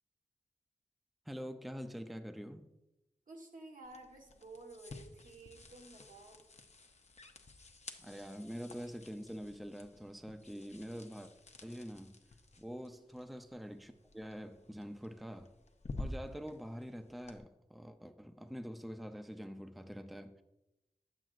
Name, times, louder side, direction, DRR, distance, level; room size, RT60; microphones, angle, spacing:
voice 1, 1.3-2.7 8.0-11.3 11.6-12.1 12.6-15.5 16.0-20.4, equal, ahead, 0.5 m, -45 dB
voice 2, 3.3-6.4, right 2 dB, 85° right, 1.3 m, -53 dB
sound 1, 3.8-17.4, left 2 dB, 55° left, 0.7 m, -51 dB
8.9 x 7.5 x 2.5 m
wide cardioid pair, 65°, 13 cm